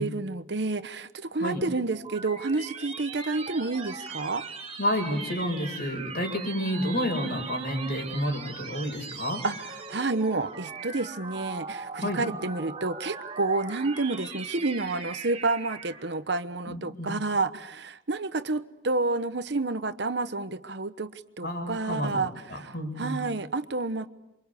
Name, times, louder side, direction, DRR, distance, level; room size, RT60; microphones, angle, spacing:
voice 1, 0.0-4.5 9.4-24.1, right 3 dB, 60° right, 1.0 m, -30 dB
sound 1, 1.5-16.2, right 4 dB, 30° right, 3.7 m, -40 dB
voice 2, 4.8-9.4 11.9-12.2 16.7-17.2 21.4-23.2, equal, 55° left, 5.6 m, -30 dB
28.5 x 24.5 x 8.2 m
head